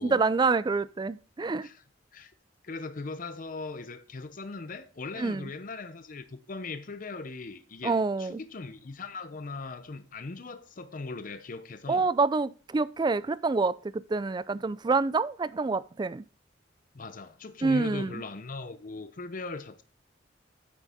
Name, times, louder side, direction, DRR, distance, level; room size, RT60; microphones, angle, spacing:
voice 1, 0.0-1.7 5.2-5.5 7.8-8.4 11.9-16.2 17.6-18.2, right 4 dB, 25° right, 0.3 m, -27 dB
voice 2, 2.6-12.1 16.9-19.8, left 3 dB, 45° left, 0.6 m, -39 dB
9.3 x 6.4 x 3.5 m
head